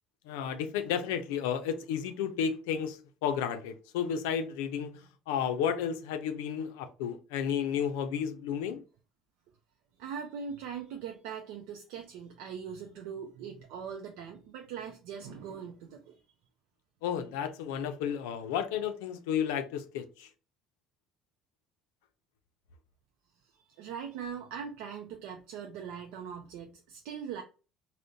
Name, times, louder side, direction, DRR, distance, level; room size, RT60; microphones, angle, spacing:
voice 1, 0.3-8.8 17.0-20.3, left 8 dB, 90° left, 0.4 m, -32 dB
voice 2, 10.0-16.2 23.5-27.4, right 7 dB, 80° right, 0.4 m, -41 dB
3.6 x 2.0 x 2.6 m
supercardioid pair, 85°, 0 cm